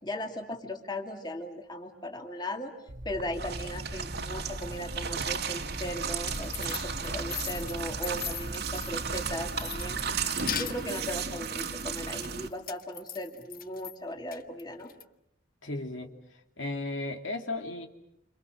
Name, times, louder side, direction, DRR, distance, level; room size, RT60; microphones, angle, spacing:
voice 1, 0.0-2.7 3.0-10.0 10.4-14.9, left 1 dB, 20° left, 3 dB, 2.7 m, -38 dB
sound 1, 2.9-5.3 5.6-10.2, right 1 dB, 90° right, 3.2 m, -41 dB
sound 2, 3.3-12.5, right 5 dB, 55° right, 2.0 m, -35 dB
sound 3, 6.0-9.2 9.6-11.1 12.2-14.0 14.3-15.0, left 10 dB, 45° left, 1.1 m, -39 dB
voice 2, 15.6-16.1 16.6-17.9, left 2 dB, 80° left, 4 dB, 2.8 m, -34 dB
29.5 x 28.5 x 6.6 m, 0.80 s
head